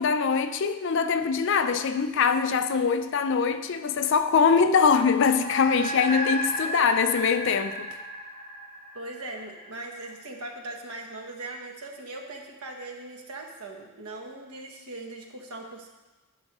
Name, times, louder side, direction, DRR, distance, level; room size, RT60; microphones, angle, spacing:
voice 1, 0.0-7.9, left 5 dB, 55° left, 0.4 m, -23 dB
sound 1, 5.3-10.0, left 1 dB, 45° right, 2.5 m, -33 dB
voice 2, 8.9-15.9, right 2 dB, 80° right, 1.0 m, -40 dB
11.0 x 5.3 x 3.0 m
head